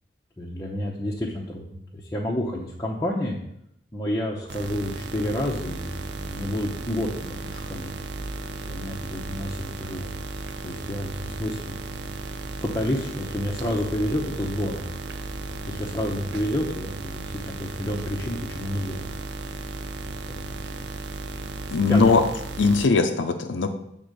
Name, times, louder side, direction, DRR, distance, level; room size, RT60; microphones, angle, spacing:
voice 1, 0.4-3.4 3.9-7.9 8.6-10.1 10.6-12.1 12.6-14.9 15.3-19.1 20.3-20.6 21.9-22.1, left 1 dB, 15° left, -3 dB, 0.8 m, -30 dB
sound 1, 4.5-22.9, right 3 dB, 60° right, 0.6 m, -35 dB
voice 2, 21.7-22.2 22.6-23.7, left 4 dB, 75° left, 5 dB, 0.6 m, -19 dB
7.8 x 3.7 x 6.6 m, 0.78 s
head